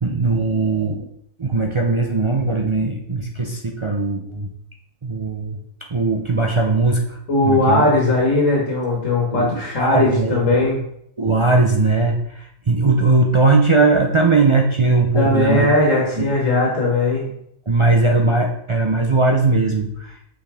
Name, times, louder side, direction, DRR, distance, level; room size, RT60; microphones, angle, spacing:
voice 1, 0.0-1.1 1.4-4.5 5.0-5.6 5.9-7.2 7.4-7.9 9.3-10.7 11.2-15.7 16.2-16.3 17.7-20.2, right 3 dB, 40° right, 1 dB, 0.4 m, -19 dB
voice 2, 7.3-10.8 15.1-17.2, left 2 dB, 75° left, -2 dB, 1.8 m, -18 dB
6.3 x 5.7 x 3.5 m, 0.72 s
omnidirectional pair, 1.3 m